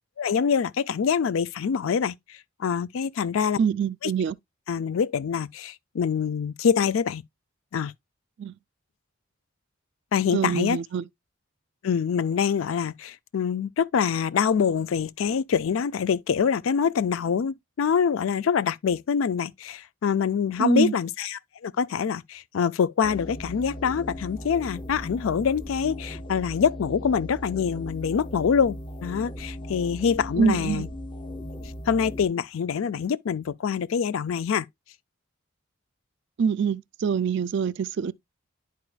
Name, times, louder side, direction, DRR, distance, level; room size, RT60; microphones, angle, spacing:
voice 1, 0.2-3.6 4.0-4.1 4.7-7.2 7.7-7.9 10.1-10.8 11.8-30.9 31.9-34.7, left 7 dB, 75° left, 0.4 m, -25 dB
voice 2, 3.6-4.4 8.4-8.5 10.3-11.0 20.6-20.9 30.4-30.9 36.4-38.1, right 6 dB, 55° right, 0.3 m, -25 dB
sound 1, 23.0-32.3, equal, 25° left, 0.7 m, -38 dB
10.5 x 4.7 x 2.3 m
head